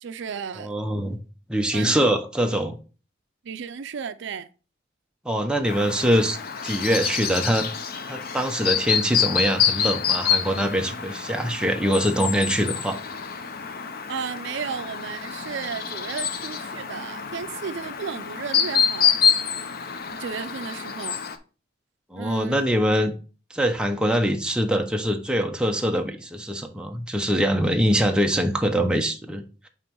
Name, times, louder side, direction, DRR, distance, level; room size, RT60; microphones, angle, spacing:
voice 1, 0.0-0.7 1.7-2.0 3.4-4.5 14.1-19.2 20.1-21.2 22.2-22.7, right 6 dB, 65° right, 0.4 m, -34 dB
voice 2, 0.6-1.2 1.5-2.8 5.2-7.7 8.1-13.0 22.1-23.1 23.5-29.7, equal, 5° right, 0.7 m, -23 dB
Chirp tweet, 5.6-21.4, left 7 dB, 50° left, 0.7 m, -27 dB
8.9 x 3.0 x 4.5 m
head